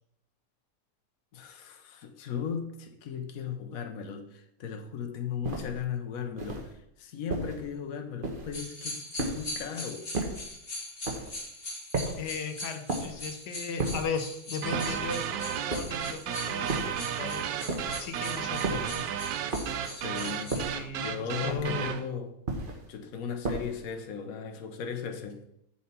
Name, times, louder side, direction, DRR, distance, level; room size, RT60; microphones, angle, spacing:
voice 1, 1.3-6.7 7.0-10.1 18.6-19.1 20.0-20.6 21.0-22.3 22.9-25.4, left 7 dB, 60° left, 5 dB, 1.3 m, -37 dB
sound 1, 5.4-5.8 6.4-6.7 7.3-7.7 8.2-8.6 9.2-9.6 10.1-10.5 11.0-11.4 11.9-12.3 12.9-13.3 13.8-14.2 14.7-15.1 15.7-16.1 16.7-17.1 17.7-18.1 18.6-19.0 19.5-19.9 20.5-20.9 21.5-21.9 22.5-22.9 23.4-23.9, right 2 dB, 35° right, 1.4 m, -34 dB
sound 2, 8.5-20.7, left 1 dB, 35° left, 1.9 m, -41 dB
voice 2, 12.2-17.4 18.0-18.8 20.5-22.0, left 4 dB, 85° left, 7 dB, 1.4 m, -36 dB
sound 3, 14.6-22.1, right 9 dB, 75° right, 1.1 m, -33 dB
7.4 x 7.2 x 4.4 m, 0.76 s
omnidirectional pair, 1.8 m